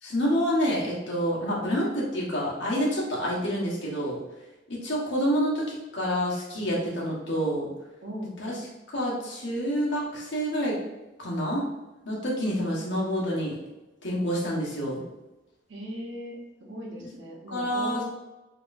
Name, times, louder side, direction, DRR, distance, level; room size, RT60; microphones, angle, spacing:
voice 1, 0.0-4.2 4.7-7.7 8.4-8.6 8.9-10.8 11.2-11.6 12.0-13.6 14.0-15.0 17.5-18.0, equal, 70° left, -5 dB, 1.3 m, -28 dB
voice 2, 8.0-8.3 15.7-18.0, equal, 80° right, -2 dB, 1.0 m, -38 dB
4.4 x 2.9 x 2.6 m, 1.1 s
head